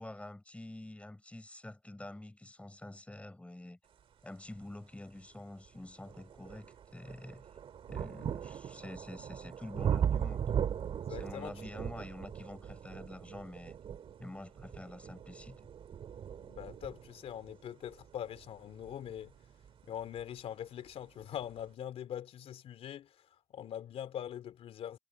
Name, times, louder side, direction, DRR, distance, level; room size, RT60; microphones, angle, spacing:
voice 1, 0.0-3.8 4.2-7.6 7.9-10.4 11.1-13.8 14.2-15.6, left 1 dB, 10° left, 7.1 m, -47 dB
sound 1, 5.0-5.1 5.7-20.3 21.2-21.3, right 8 dB, 60° right, 2.5 m, -39 dB
voice 2, 11.1-11.5 16.5-19.3 19.8-23.1 23.5-25.0, left 10 dB, 70° left, 3.7 m, -42 dB
cardioid pair, 80°, 10 cm